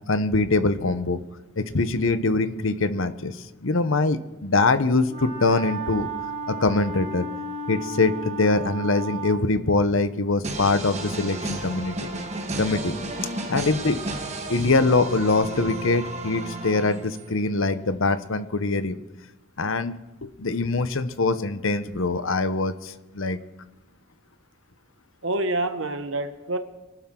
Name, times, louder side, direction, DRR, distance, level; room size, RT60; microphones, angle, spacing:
voice 1, 0.1-1.2 1.6-3.4 3.6-6.1 6.5-7.3 7.7-12.1 12.6-13.0 13.5-14.0 14.5-19.0 19.6-23.4, left 3 dB, 70° left, 12 dB, 0.9 m, -23 dB
Wind instrument woodwind instrument, 5.0-9.5, right 2 dB, 25° left, 2.1 m, -33 dB
sound 1, 10.4-17.4, right 2 dB, 30° right, 1.5 m, -33 dB
voice 2, 13.4-13.7 25.2-26.6, right 2 dB, 65° right, 8 dB, 1.2 m, -28 dB
24.5 x 11.5 x 3.8 m, 1.1 s
head